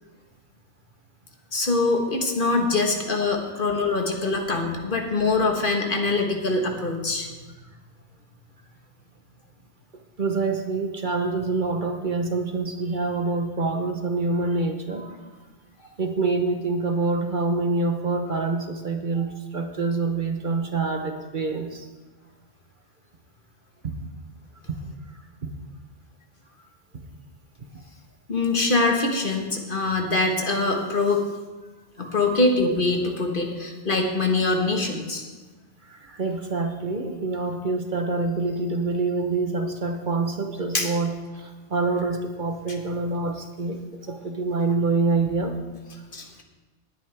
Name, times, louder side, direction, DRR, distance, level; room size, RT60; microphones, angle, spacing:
voice 1, 1.5-7.3 15.0-15.1 28.3-31.2 32.0-35.2 40.7-40.9 46.1-46.3, left 3 dB, 50° left, 3 dB, 1.6 m, -23 dB
voice 2, 10.2-15.1 16.0-21.9 23.8-23.9 24.7-24.8 25.4-25.5 27.6-27.7 32.0-32.1 35.8-45.5, right 3 dB, 45° right, 5 dB, 1.1 m, -26 dB
18.5 x 10.0 x 3.4 m, 1.3 s
omnidirectional pair, 1.2 m